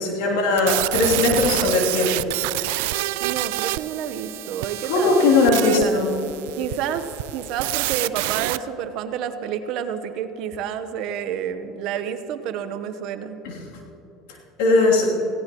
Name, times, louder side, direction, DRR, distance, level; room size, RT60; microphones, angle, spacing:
voice 1, 0.0-2.2 4.9-6.1 13.4-13.6 14.6-15.2, left 3 dB, 80° left, -3 dB, 2.9 m, -19 dB
sound 1, 0.6-8.6, right 19 dB, 80° right, 0.3 m, -27 dB
voice 2, 3.2-6.0 6.6-7.0 7.3-13.4, right 8 dB, 65° right, 10 dB, 1.0 m, -29 dB
18.0 x 16.5 x 3.0 m, 3.0 s
supercardioid pair, 100°, 0 cm